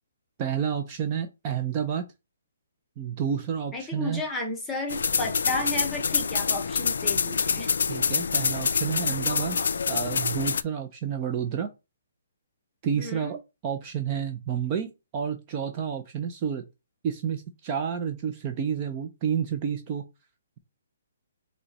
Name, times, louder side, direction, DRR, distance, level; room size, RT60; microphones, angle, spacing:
voice 1, 0.4-2.0 3.0-4.2 7.9-9.6 9.9-11.7 12.8-13.4 13.6-14.9 15.1-16.6 17.0-20.0, right 7 dB, 20° right, 0.4 m, -30 dB
voice 2, 3.7-7.7 12.9-13.4, left 2 dB, 5° left, 0.7 m, -33 dB
sound 1, 4.9-10.6, left 5 dB, 70° left, 0.3 m, -26 dB
5.2 x 2.2 x 4.0 m
hypercardioid pair, 170°, 0 cm